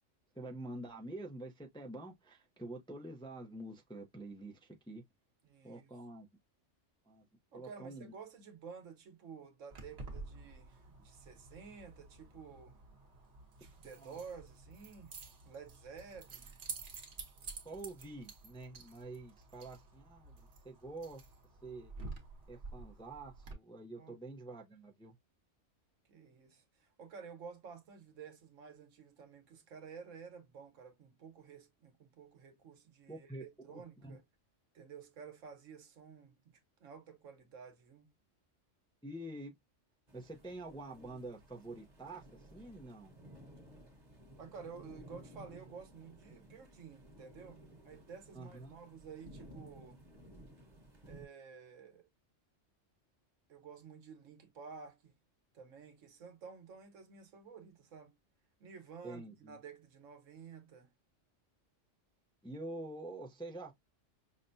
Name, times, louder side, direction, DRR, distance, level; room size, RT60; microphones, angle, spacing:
voice 1, 0.3-5.0 5.6-6.3 7.1-7.2 7.5-8.1 14.0-14.2 17.6-21.2 21.6-21.9 22.5-25.2 33.1-34.2 39.0-39.6 40.1-43.2 48.3-48.7 59.0-59.6 62.4-63.7, right 2 dB, 5° left, 0.4 m, -47 dB
voice 2, 5.4-5.9 7.5-12.8 13.6-15.1 15.4-16.5 24.0-24.2 26.1-34.2 34.7-38.1 44.4-50.0 51.0-52.1 53.5-55.1 55.5-58.2 58.6-60.9, right 6 dB, 85° right, 1.3 m, -52 dB
Keys jangling, 9.7-23.5, right 4 dB, 60° right, 1.2 m, -50 dB
sound 1, 40.1-51.3, right 1 dB, 35° right, 1.2 m, -56 dB
5.8 x 2.2 x 2.5 m
omnidirectional pair, 1.3 m